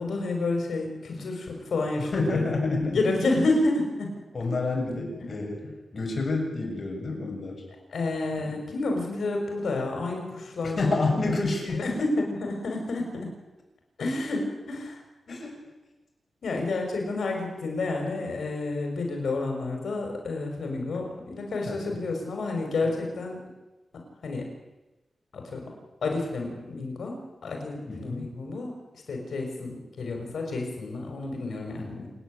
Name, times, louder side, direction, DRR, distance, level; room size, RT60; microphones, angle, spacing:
voice 1, 0.0-2.5 2.9-4.1 7.9-11.4 11.6-13.4 14.0-15.0 15.3-15.4 16.4-23.4 24.2-24.5 25.3-25.7 26.0-28.7 29.1-32.1, left 2 dB, 80° left, 2 dB, 6.0 m, -30 dB
voice 2, 2.0-3.1 4.3-7.6 8.4-8.6 10.8-12.1 15.3-15.6 21.7-22.0 22.8-23.0 27.9-28.4 31.8-32.1, left 3 dB, 45° left, 0 dB, 7.1 m, -29 dB
27.5 x 10.5 x 9.7 m, 1.1 s
wide cardioid pair, 110°, 0 cm